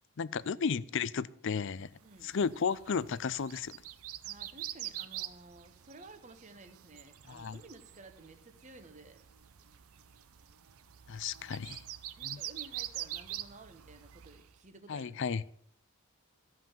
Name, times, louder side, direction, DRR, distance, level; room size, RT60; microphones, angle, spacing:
voice 1, 0.2-1.9 2.2-3.8 7.3-7.6 11.1-11.8 12.2-12.4 14.9-15.4, left 6 dB, 55° left, 19 dB, 0.4 m, -34 dB
voice 2, 2.0-2.3 4.2-9.2 12.2-15.4, right 3 dB, 35° right, 8 dB, 1.2 m, -54 dB
sound 1, 2.1-14.5, right 13 dB, 75° right, 0.6 m, -45 dB
13.5 x 5.6 x 7.3 m, 0.67 s
head